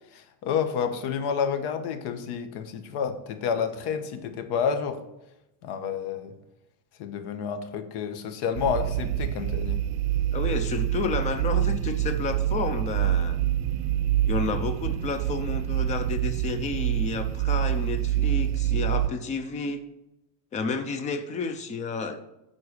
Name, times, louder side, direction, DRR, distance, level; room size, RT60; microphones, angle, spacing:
voice 1, 0.1-5.0 5.6-6.3 7.0-9.8, left 7 dB, 50° left, 9 dB, 1.2 m, -29 dB
sound 1, 8.5-19.1, right 12 dB, 75° right, 0.8 m, -26 dB
voice 2, 10.3-13.4 14.3-19.8 20.5-22.2, left 4 dB, 15° left, 9 dB, 0.3 m, -31 dB
9.8 x 4.1 x 6.4 m, 0.91 s
cardioid pair, 155°, 49 cm